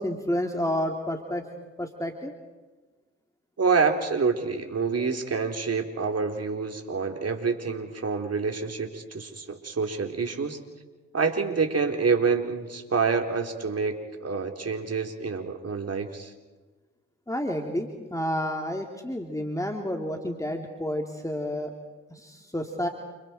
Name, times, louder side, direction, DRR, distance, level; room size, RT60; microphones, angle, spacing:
voice 1, 0.0-1.4 1.8-2.3 17.3-21.7 22.1-22.9, left 1 dB, 10° left, 2 dB, 3.4 m, -30 dB
voice 2, 3.6-10.6 11.1-16.3, right 5 dB, 50° right, 4 dB, 4.0 m, -27 dB
29.5 x 28.5 x 4.6 m, 1.3 s
hypercardioid pair, 40°, 33 cm